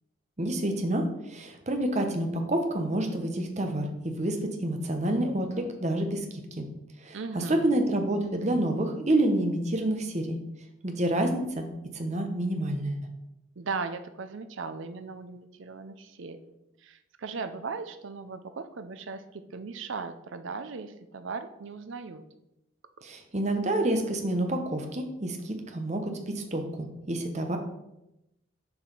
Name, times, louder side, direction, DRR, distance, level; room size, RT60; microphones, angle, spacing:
voice 1, 0.4-6.7 7.0-10.4 10.8-11.6 11.9-13.1 23.0-27.6, right 1 dB, 30° right, 5 dB, 0.9 m, -28 dB
voice 2, 7.1-7.8 13.6-16.5 16.8-22.2, right 4 dB, 60° right, 9 dB, 0.5 m, -38 dB
7.0 x 4.8 x 5.3 m, 0.88 s
head